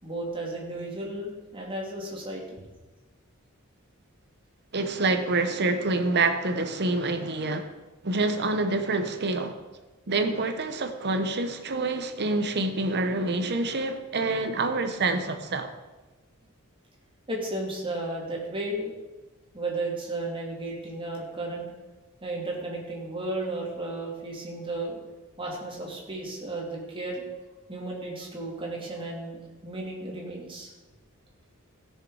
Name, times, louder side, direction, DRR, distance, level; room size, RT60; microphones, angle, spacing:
voice 1, 0.0-2.6 17.3-18.9 19.5-21.7 22.2-25.0 25.4-27.2 27.7-30.7, right 2 dB, 25° right, 2.7 m, -34 dB
voice 2, 4.7-7.7 8.0-9.6 10.1-15.7, right 3 dB, 55° right, 1.0 m, -27 dB
16.0 x 6.7 x 4.8 m
head